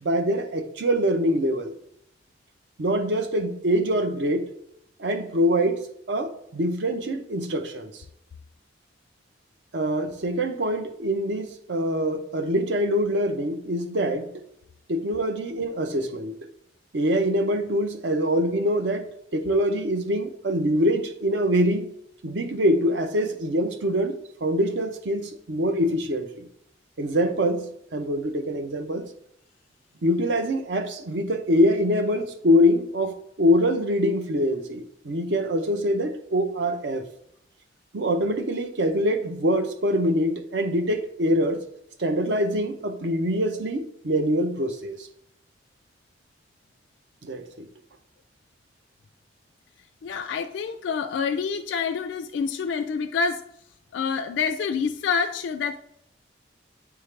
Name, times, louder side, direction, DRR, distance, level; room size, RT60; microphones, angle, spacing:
voice 1, 0.0-1.7 2.8-4.5 5.0-5.8 6.1-7.9 9.7-14.4 14.9-16.3 16.9-21.9 22.2-26.5 27.0-29.1 30.0-37.1 37.9-41.6 42.0-45.0 47.2-47.7, equal, 70° right, 0.6 m, -24 dB
voice 2, 50.0-53.4 53.9-55.8, left 5 dB, 75° left, 0.3 m, -27 dB
8.9 x 3.5 x 3.2 m
head